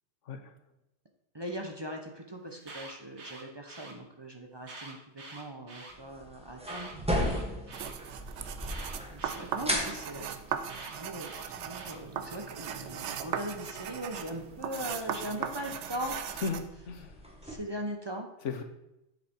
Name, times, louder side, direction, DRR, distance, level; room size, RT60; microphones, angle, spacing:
voice 1, 1.3-6.9 9.1-10.6 10.9-16.2 17.4-18.3, right 1 dB, 25° right, 2 dB, 0.9 m, -40 dB
Alarm, 2.5-3.9 4.6-5.9 6.6-7.9 8.7-9.9 10.7-12.0, right 2 dB, 70° right, 1.6 m, -46 dB
sound 1, 5.9-17.6, equal, 5° right, 1.4 m, -38 dB
sound 2, 7.7-16.7, right 8 dB, 85° right, 1.0 m, -38 dB
voice 2, 16.4-17.1 18.4-18.6, left 5 dB, 85° left, 6 dB, 1.3 m, -36 dB
8.0 x 6.8 x 4.5 m, 0.89 s
omnidirectional pair, 1.2 m